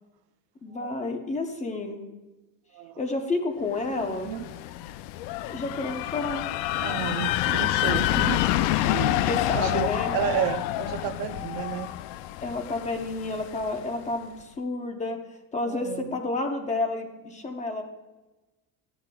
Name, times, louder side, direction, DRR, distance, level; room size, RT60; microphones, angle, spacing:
voice 1, 0.6-2.0 3.0-4.3 5.5-6.5 9.3-10.1 12.4-15.2 15.5-17.8, left 2 dB, 15° left, 4 dB, 0.6 m, -30 dB
sound 1, 4.0-13.8, left 14 dB, 85° left, 0.6 m, -28 dB
voice 2, 6.8-9.2 9.5-11.9 15.7-16.2, right 10 dB, 55° right, 10 dB, 0.6 m, -32 dB
14.5 x 10.5 x 2.3 m, 1.1 s
cardioid pair, 175°, 44 cm